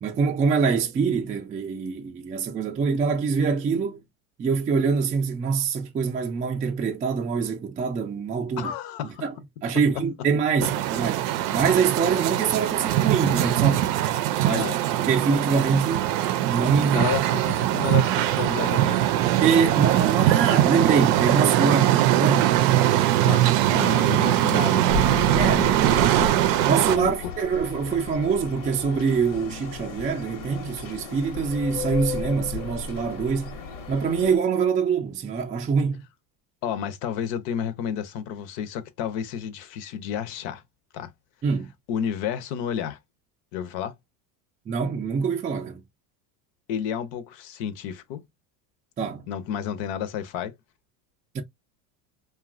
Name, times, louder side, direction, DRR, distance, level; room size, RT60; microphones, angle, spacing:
voice 1, 0.0-4.0 4.4-8.7 9.2-9.3 9.6-11.3 11.5-13.9 14.4-14.6 15.0-16.0 16.4-17.1 19.4-22.5 25.4-25.7 26.7-33.6 33.9-36.0 41.4-41.7 44.7-45.8 49.0-49.3 51.3-51.4, right 5 dB, 15° right, 0.3 m, -24 dB
voice 2, 8.6-9.2 9.9-10.0 14.4-14.8 16.9-19.3 23.2-26.4 26.9-27.3 36.6-40.6 40.9-41.1 41.9-43.0 43.5-43.9 46.7-48.2 49.3-50.5, left 9 dB, 60° left, 0.7 m, -31 dB
sound 1, 10.6-27.0, right 13 dB, 65° right, 0.5 m, -21 dB
sound 2, 24.9-34.4, left 5 dB, 85° left, 1.1 m, -34 dB
2.8 x 2.3 x 2.4 m
supercardioid pair, 100°, 50 cm